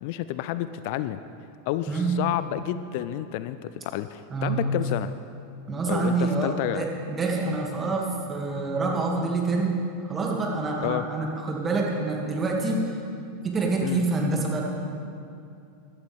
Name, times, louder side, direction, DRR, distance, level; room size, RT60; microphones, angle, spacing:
voice 1, 0.0-1.2 1.7-5.1 5.9-6.1 6.4-6.9 10.8-11.0 13.8-14.0, left 13 dB, 55° left, 13 dB, 0.4 m, -30 dB
voice 2, 4.3-4.7 5.7-12.8 13.4-14.6, right 3 dB, 25° right, -1 dB, 2.4 m, -27 dB
16.0 x 12.0 x 3.6 m, 2.6 s
hypercardioid pair, 90°, 0 cm